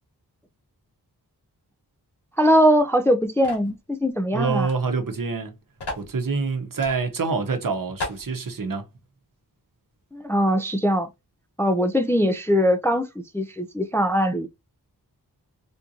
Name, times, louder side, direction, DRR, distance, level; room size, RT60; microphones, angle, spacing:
voice 1, 2.4-4.7 10.1-11.1 11.6-13.1 13.3-14.5, equal, 5° left, 0.4 m, -21 dB
sound 1, 3.4-3.7 4.6-4.8 5.0-5.1 5.8-6.1 6.8-7.0 7.5-7.6 8.0-8.3, left 2 dB, 80° left, 2.1 m, -33 dB
voice 2, 4.3-5.5 6.0-8.8, right 4 dB, 55° right, 0.9 m, -26 dB
3.6 x 2.5 x 2.8 m
wide cardioid pair, 60°, 39 cm